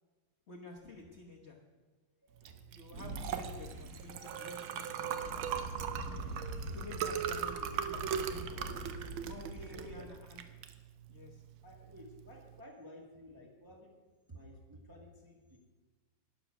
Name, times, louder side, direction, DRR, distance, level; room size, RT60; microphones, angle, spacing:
voice 1, 0.5-1.6 2.7-5.5 6.7-8.7 9.2-10.6 11.1-11.4, left 2 dB, 40° left, -1 dB, 1.2 m, -51 dB
voice 2, 2.2-2.7 7.4-7.5 9.7-10.1 11.6-15.6, left 1 dB, 10° right, -1 dB, 1.4 m, -54 dB
Liquid, 2.4-12.6, right 8 dB, 85° right, 1.6 m, -40 dB
sound 1, 2.9-10.0, right 2 dB, 55° right, 1.8 m, -44 dB
12.0 x 10.0 x 6.0 m, 1.3 s
omnidirectional pair, 2.1 m